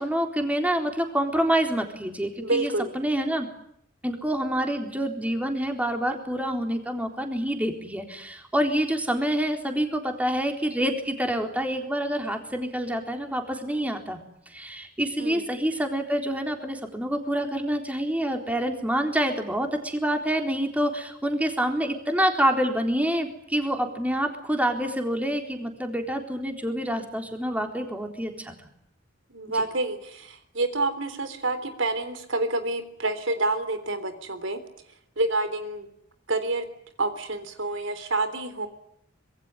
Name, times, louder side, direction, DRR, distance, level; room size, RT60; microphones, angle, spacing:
voice 1, 0.0-3.5 4.0-14.2 14.5-28.5, equal, 5° right, 4 dB, 3.9 m, -27 dB
voice 2, 2.4-2.9 15.2-15.4 29.3-34.6 35.2-35.9 36.3-36.6 37.0-38.7, right 2 dB, 70° right, 10 dB, 3.6 m, -28 dB
26.0 x 22.0 x 9.8 m, 0.71 s
head